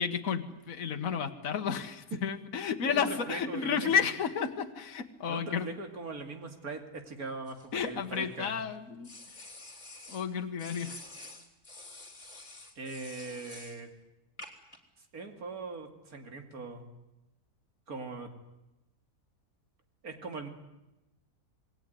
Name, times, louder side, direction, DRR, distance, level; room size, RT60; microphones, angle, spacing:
voice 1, 0.0-5.7 7.7-9.5 10.1-11.0, left 7 dB, 60° left, 6 dB, 1.7 m, -32 dB
voice 2, 2.8-3.9 5.3-8.5 12.8-13.9 15.1-16.9 17.9-18.3 20.0-20.5, right 3 dB, 70° right, 5 dB, 3.0 m, -40 dB
sound 1, 7.5-8.5 9.0-10.3 10.6-13.8 14.4-14.8, left 2 dB, 30° left, 3.3 m, -48 dB
27.0 x 20.5 x 9.3 m, 0.97 s
omnidirectional pair, 1.6 m